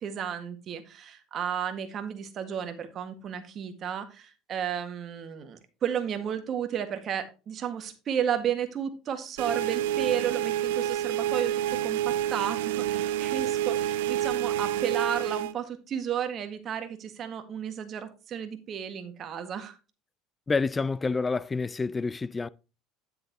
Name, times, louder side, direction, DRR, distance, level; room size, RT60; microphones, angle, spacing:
voice 1, 0.0-19.8, right 8 dB, 40° right, 1.8 m, -33 dB
sound 1, 9.4-15.5, right 12 dB, 90° right, 0.4 m, -28 dB
voice 2, 20.5-22.5, left 4 dB, 20° left, 0.5 m, -28 dB
10.0 x 7.7 x 2.9 m
supercardioid pair, 105°, 0 cm